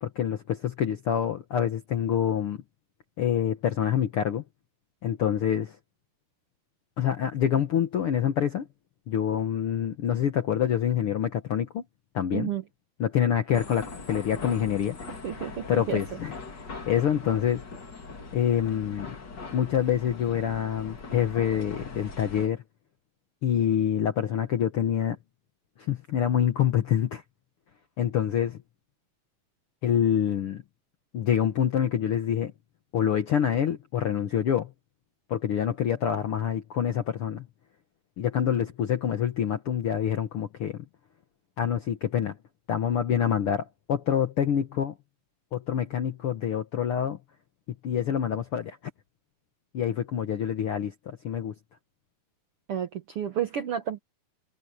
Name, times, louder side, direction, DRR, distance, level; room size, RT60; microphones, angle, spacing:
voice 1, 0.0-2.6 3.2-4.4 5.0-5.8 7.0-8.7 9.1-11.8 12.1-12.5 13.0-15.4 15.7-16.3 16.9-17.6 18.3-19.2 19.5-22.6 23.4-25.2 25.8-27.2 28.0-28.6 29.8-30.6 31.1-32.5 32.9-34.7 35.3-37.5 38.2-40.8 41.6-42.4 42.7-44.9 45.5-47.2 47.8-48.8 49.7-51.5, left 9 dB, 65° left, 1.4 m, -26 dB
voice 2, 12.3-12.6 15.1-16.2 52.7-54.0, right 9 dB, 70° right, 1.4 m, -31 dB
sound 1, 13.5-22.5, left 4 dB, 35° left, 2.9 m, -41 dB
omnidirectional pair, 3.9 m